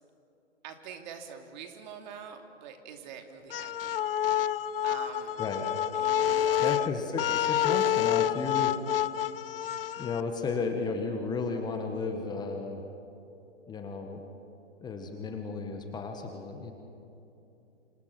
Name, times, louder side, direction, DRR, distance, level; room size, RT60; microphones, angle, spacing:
voice 1, 0.6-4.1 4.8-5.4 5.9-6.9 9.2-9.3, right 7 dB, 40° right, 5 dB, 2.8 m, -45 dB
sound 1, 3.5-10.2, left 10 dB, 50° left, 0.7 m, -28 dB
voice 2, 6.6-8.7 10.0-12.8 13.7-14.2 14.8-16.7, left 4 dB, 10° left, 4 dB, 1.6 m, -33 dB
29.5 x 27.0 x 6.1 m, 2.8 s
hypercardioid pair, 140°, 36 cm